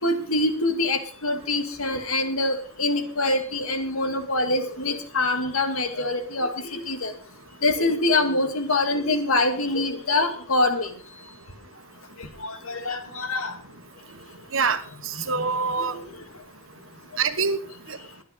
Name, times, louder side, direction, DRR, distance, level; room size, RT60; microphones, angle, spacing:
voice 1, 0.0-7.1 7.6-10.9 12.4-13.5 15.3-15.5 15.8-15.9, left 2 dB, 85° left, 6 dB, 2.3 m, -25 dB
voice 2, 14.5-16.0 17.2-17.6 17.9-18.0, right 5 dB, 70° right, 9 dB, 1.4 m, -25 dB
22.0 x 10.0 x 4.1 m, 0.41 s
head